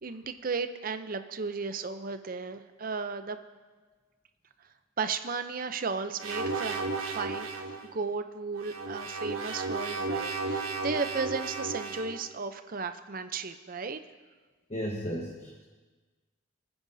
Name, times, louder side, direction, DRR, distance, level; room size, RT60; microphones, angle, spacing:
voice 1, 0.0-3.4 5.0-7.5 7.8-14.0, right 4 dB, 40° right, 9 dB, 0.6 m, -34 dB
sound 1, 6.2-7.8 8.6-12.2, right 3 dB, 80° right, 1.2 m, -34 dB
voice 2, 14.7-15.6, equal, 30° left, 0 dB, 1.1 m, -35 dB
25.5 x 9.5 x 2.7 m, 1.3 s
head